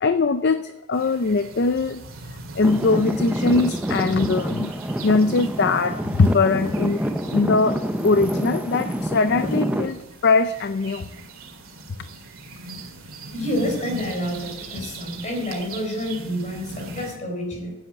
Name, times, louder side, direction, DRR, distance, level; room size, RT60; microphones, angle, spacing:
voice 1, 0.0-2.0 2.6-4.7 5.0-7.0 7.3-7.8 8.0-11.1, left 3 dB, 50° left, 10 dB, 0.5 m, -21 dB
sound 1, 0.9-17.2, right 2 dB, 85° right, 2.1 m, -40 dB
Traffic noise roadway noise / Engine, 2.6-9.9, equal, 5° right, 0.6 m, -27 dB
voice 2, 13.3-17.7, equal, 35° left, 1 dB, 4.3 m, -28 dB
10.0 x 8.6 x 7.8 m, 0.95 s
head